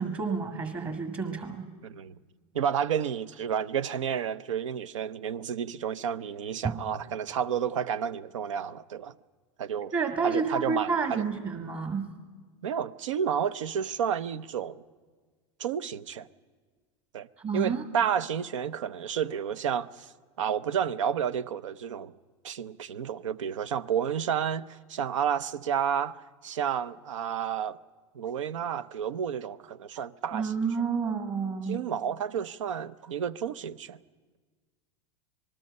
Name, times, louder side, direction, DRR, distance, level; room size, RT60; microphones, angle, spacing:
voice 1, 0.0-1.7 6.6-6.7 9.9-12.1 17.4-17.8 30.3-31.8, right 5 dB, 35° right, 1.8 m, -30 dB
voice 2, 1.8-2.1 2.5-9.1 9.6-9.9 10.2-11.3 12.6-14.8 15.6-16.3 17.1-17.3 17.5-20.1 20.4-22.1 22.4-27.8 28.1-30.5 31.7-34.0, right 8 dB, 90° right, 0.6 m, -31 dB
26.5 x 20.0 x 5.4 m
hypercardioid pair, 105°, 16 cm